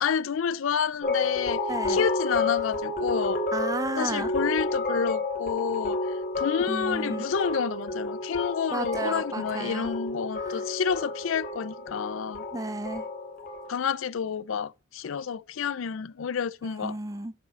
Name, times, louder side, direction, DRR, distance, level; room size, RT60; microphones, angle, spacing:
voice 1, 0.0-1.6 1.9-3.4 4.0-6.0 6.4-12.4 13.7-17.0, left 7 dB, 80° left, 0.4 m, -29 dB
sound 1, 1.0-13.7, left 2 dB, 45° left, 2.5 m, -30 dB
voice 2, 1.7-2.0 3.5-4.3 6.5-7.3 8.7-10.0 10.4-10.7 12.5-13.0 16.8-17.3, right 2 dB, 15° right, 0.5 m, -33 dB
7.0 x 5.0 x 5.5 m
head